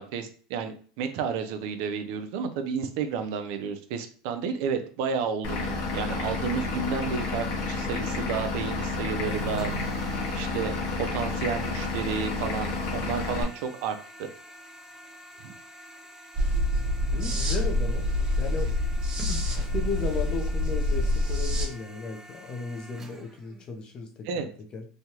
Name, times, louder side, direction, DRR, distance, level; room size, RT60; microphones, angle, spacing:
voice 1, 0.0-9.7 10.3-14.3 15.4-15.5 24.2-24.5, right 6 dB, 65° right, 8 dB, 0.5 m, -31 dB
Vehicle / Engine, 5.4-13.4, left 3 dB, 65° left, 1.0 m, -30 dB
sound 1, 9.3-23.7, equal, 15° right, 0.5 m, -48 dB
sound 2, 16.3-21.7, left 1 dB, 35° right, 1.2 m, -26 dB
voice 2, 17.1-18.1 18.4-18.8 19.3-24.1 24.4-24.9, left 4 dB, 35° left, 3 dB, 0.6 m, -35 dB
3.1 x 2.3 x 2.8 m, 0.42 s
supercardioid pair, 120°, 3 cm